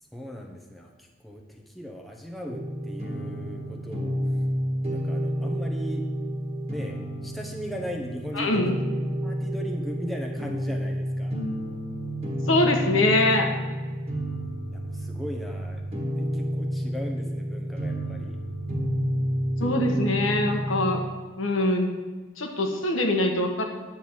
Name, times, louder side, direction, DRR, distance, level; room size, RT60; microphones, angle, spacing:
voice 1, 0.1-4.2 4.9-6.1 6.7-8.6 9.2-11.4 14.7-15.8 16.2-18.4, equal, ahead, 0 dB, 0.8 m, -38 dB
sound 1, 2.5-21.1, equal, 30° right, 1.6 m, -30 dB
voice 2, 8.3-8.8 12.5-13.5 19.6-21.0 21.4-21.9 22.4-23.7, left 1 dB, 70° left, 2 dB, 1.2 m, -23 dB
10.0 x 4.6 x 7.4 m, 1.3 s
head